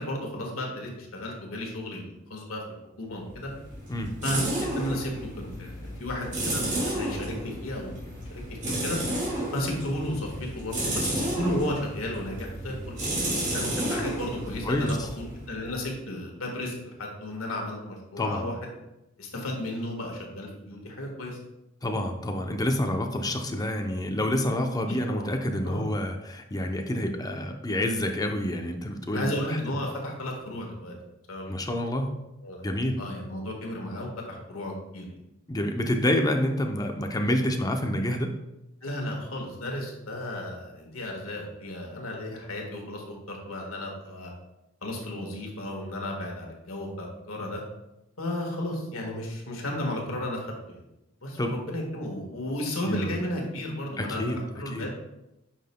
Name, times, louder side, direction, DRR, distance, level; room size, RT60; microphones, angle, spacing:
voice 1, 0.0-2.6 3.0-3.5 4.2-9.0 9.5-13.0 13.5-14.9 15.3-18.6 19.2-21.4 24.9-25.2 25.6-25.8 29.1-30.9 31.3-31.6 32.4-32.6 33.0-35.1 38.8-44.3 44.8-47.6 48.2-50.8 51.2-54.2 54.5-54.9, left 1 dB, 90° left, 0 dB, 1.6 m, -34 dB
sound 1, 3.3-15.9, right 1 dB, 40° right, 2.4 m, -32 dB
voice 2, 14.6-15.0 18.2-18.5 21.8-29.3 29.7-29.8 31.5-32.1 32.6-33.0 35.5-38.3 51.4-51.5 52.9-53.2 54.0-54.4 54.7-54.9, left 1 dB, 20° left, 4 dB, 0.6 m, -28 dB
8.9 x 5.7 x 2.2 m, 0.91 s
head